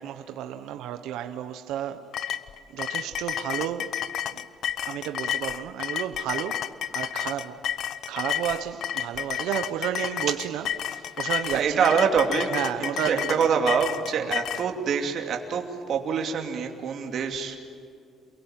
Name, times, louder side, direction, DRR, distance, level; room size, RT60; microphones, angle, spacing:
voice 1, 0.0-2.1 2.7-3.9 4.3-4.4 4.8-11.9 12.5-13.6 14.2-14.3, right 11 dB, 85° right, 1.2 m, -32 dB
sound 1, 2.1-14.7, left 10 dB, 55° left, 0.8 m, -31 dB
voice 2, 11.5-17.6, right 6 dB, 45° right, 2.7 m, -26 dB
28.5 x 22.5 x 9.1 m
cardioid pair, 175°, 0 cm